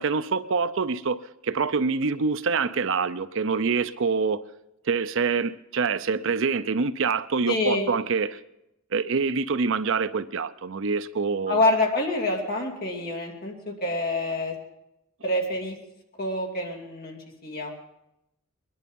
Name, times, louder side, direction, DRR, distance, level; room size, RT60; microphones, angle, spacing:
voice 1, 0.0-4.4 4.8-8.4 8.9-11.6, right 5 dB, 60° right, 0.6 m, -26 dB
voice 2, 7.5-7.9 11.5-14.5 15.2-15.8 16.2-17.7, left 2 dB, 45° left, 2.7 m, -26 dB
22.0 x 11.0 x 5.3 m
head